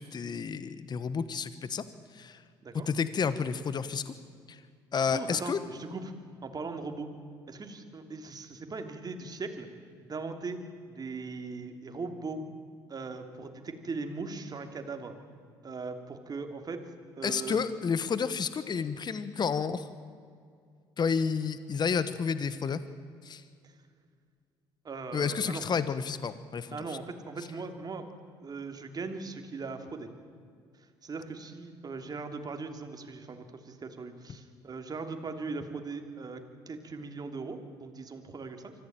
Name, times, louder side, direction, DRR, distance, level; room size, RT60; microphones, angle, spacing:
voice 1, 0.0-1.8 2.1-2.4 2.9-4.1 4.5-4.6 4.9-5.6 17.2-19.9 21.0-22.8 23.2-23.4 25.1-26.8, left 6 dB, 40° left, 13 dB, 1.2 m, -30 dB
voice 2, 5.1-6.1 6.4-7.1 7.5-9.7 10.0-10.6 10.9-12.4 12.9-15.1 15.6-16.8 17.2-17.6 24.8-25.6 26.7-28.1 28.4-30.1 31.0-38.7, right 4 dB, 40° right, 6 dB, 3.1 m, -39 dB
24.5 x 15.5 x 9.1 m, 2.2 s
hypercardioid pair, 60°, 11 cm